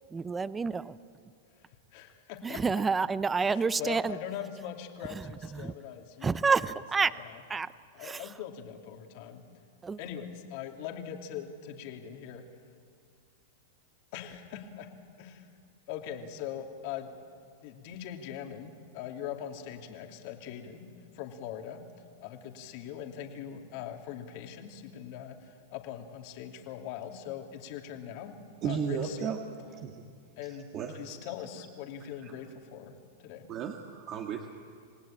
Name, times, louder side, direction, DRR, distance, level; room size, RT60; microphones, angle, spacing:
voice 1, 0.1-1.0 2.4-4.2 5.1-5.2 5.5-5.7 6.2-7.1 7.5-7.7 8.0-8.2 9.8-10.0, right 5 dB, 15° right, 16 dB, 0.6 m, -28 dB
voice 2, 1.6-2.8 3.4-6.5 7.0-7.4 7.9-9.4 10.0-12.4 14.1-14.9 15.2-15.5 15.9-17.1 17.6-20.9 21.1-21.8 22.2-28.3 28.6-29.4 30.4-30.7 30.9-32.9 33.2-33.5, left 9 dB, 55° left, 3 dB, 2.8 m, -41 dB
voice 3, 28.6-30.0 30.4-31.3 32.2-32.4 33.5-34.5, right 7 dB, 35° right, 3 dB, 1.6 m, -35 dB
28.0 x 17.5 x 8.9 m, 2.2 s
hypercardioid pair, 135°, 0 cm